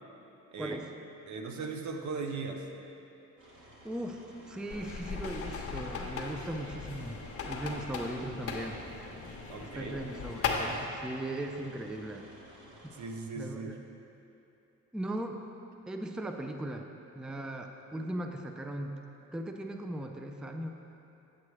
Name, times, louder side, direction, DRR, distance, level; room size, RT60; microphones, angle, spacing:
voice 1, 0.6-1.0 3.8-8.8 9.6-12.3 12.8-12.9 13.4-13.8 14.9-15.4 15.9-16.9 17.2-19.0 19.3-20.7, right 1 dB, 5° right, 4 dB, 0.4 m, -38 dB
voice 2, 1.3-2.7 7.7-7.8 9.5-10.0 13.0-13.8, right 4 dB, 70° right, 3 dB, 0.8 m, -38 dB
sound 1, 3.4-13.1, equal, 40° right, 1.8 m, -54 dB
sound 2, 4.7-10.8, left 4 dB, 50° left, 0.9 m, -37 dB
8.4 x 7.6 x 3.2 m, 2.9 s
cardioid pair, 90°, 30 cm